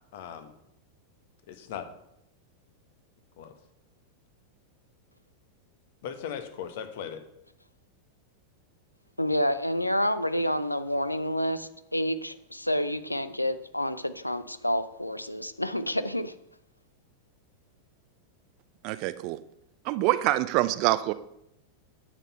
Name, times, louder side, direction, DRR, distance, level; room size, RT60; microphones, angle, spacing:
voice 1, 0.1-0.5 1.5-1.8 3.4-3.5 6.0-7.2, left 8 dB, 55° left, 8 dB, 1.3 m, -38 dB
voice 2, 9.2-16.3, left 1 dB, 85° left, 13 dB, 0.6 m, -29 dB
voice 3, 18.8-19.4 19.8-21.1, right 16 dB, 45° right, 14 dB, 0.5 m, -25 dB
9.7 x 7.5 x 5.6 m, 0.79 s
figure-of-eight pair, 90°, 0 cm